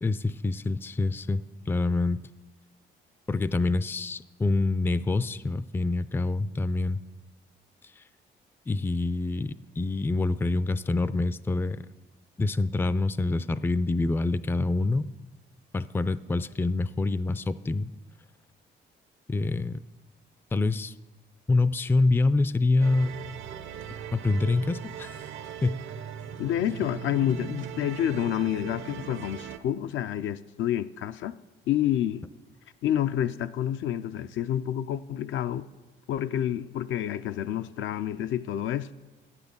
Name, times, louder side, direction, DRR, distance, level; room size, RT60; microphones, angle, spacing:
voice 1, 0.0-2.2 3.3-7.0 8.0-8.1 8.7-11.8 12.4-15.0 15.7-17.9 19.3-19.8 20.5-20.9 21.5-23.1 24.1-25.2 25.6-25.8, left 3 dB, 10° left, 0.3 m, -26 dB
sound 1, 22.8-29.6, right 9 dB, 75° right, 0.8 m, -39 dB
voice 2, 26.4-31.3 31.7-32.3 32.8-35.7 36.1-38.9, left 11 dB, 75° left, 0.5 m, -28 dB
9.4 x 8.2 x 6.9 m
cardioid pair, 90°, 20 cm